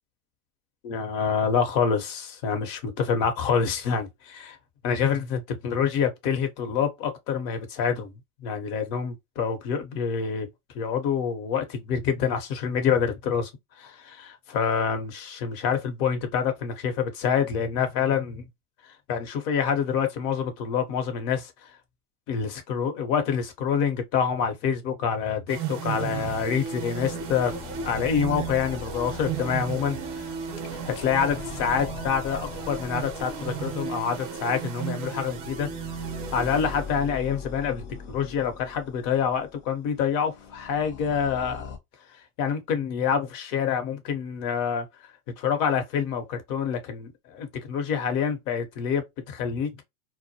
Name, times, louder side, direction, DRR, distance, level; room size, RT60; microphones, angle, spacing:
voice 1, 0.8-4.6 4.8-10.5 10.7-13.5 13.8-18.5 18.8-21.7 22.3-27.5 27.8-30.3 30.7-35.7 36.3-41.7 42.1-44.9 45.4-49.7, left 7 dB, 50° left, 0.9 m, -27 dB
sound 1, 25.5-37.4, right 7 dB, 30° right, 0.6 m, -35 dB
sound 2, 26.2-41.8, left 5 dB, 25° left, 0.5 m, -41 dB
2.2 x 2.1 x 2.7 m
hypercardioid pair, 120°, 45 cm